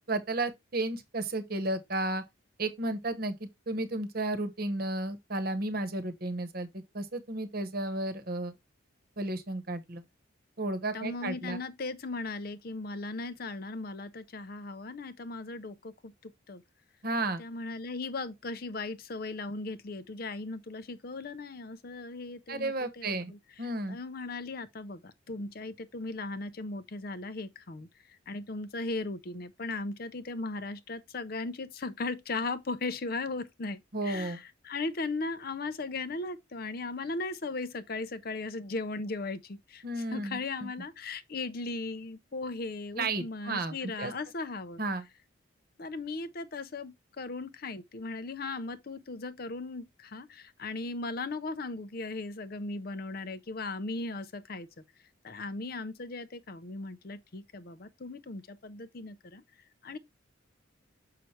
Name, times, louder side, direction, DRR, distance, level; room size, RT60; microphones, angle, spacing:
voice 1, 0.1-2.2 2.6-8.5 9.2-10.0 10.6-11.6 17.0-17.4 22.5-23.3 23.6-24.0 33.9-34.4 39.8-40.7 42.9-44.1 44.8-45.1, right 2 dB, 50° right, 1.0 m, -33 dB
voice 2, 10.9-16.6 17.4-23.4 23.9-44.8 45.8-54.7 55.2-59.4 59.8-60.0, left 3 dB, 50° left, 0.6 m, -37 dB
6.4 x 5.7 x 3.2 m
head